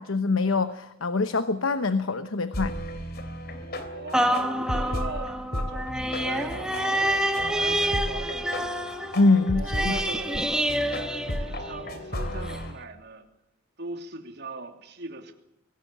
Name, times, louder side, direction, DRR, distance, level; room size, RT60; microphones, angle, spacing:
voice 1, 0.0-2.8 9.1-10.0, left 3 dB, 75° left, 12 dB, 1.0 m, -24 dB
sound 1, 2.5-12.7, left 1 dB, 50° left, 2.9 m, -34 dB
voice 2, 3.9-9.1 9.5-10.5 11.4-13.3 13.8-15.3, right 2 dB, 55° right, 5 dB, 3.0 m, -40 dB
sound 2, 4.1-12.0 12.5-12.6, right 1 dB, 5° right, 1.7 m, -28 dB
23.5 x 18.5 x 8.5 m, 0.84 s
head